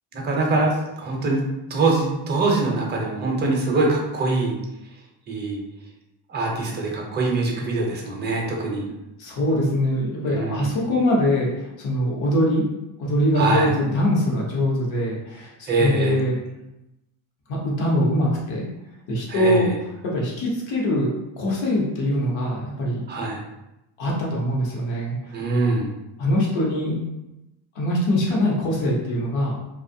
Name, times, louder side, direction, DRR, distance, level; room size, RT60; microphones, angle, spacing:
voice 1, 0.1-1.4 1.7-4.5 5.3-5.6 6.3-8.9 10.3-10.7 13.3-13.7 15.7-16.2 19.3-19.8 23.1-23.4 25.3-25.9, right 3 dB, 25° right, 0 dB, 0.5 m, -23 dB
voice 2, 9.2-12.6 13.0-15.5 15.8-16.4 17.5-18.7 19.1-19.7 20.1-23.1 24.0-25.3 26.2-27.0 27.7-29.6, equal, 75° left, -3 dB, 0.9 m, -23 dB
2.5 x 2.3 x 2.6 m, 0.93 s
cardioid pair, 125°, 46 cm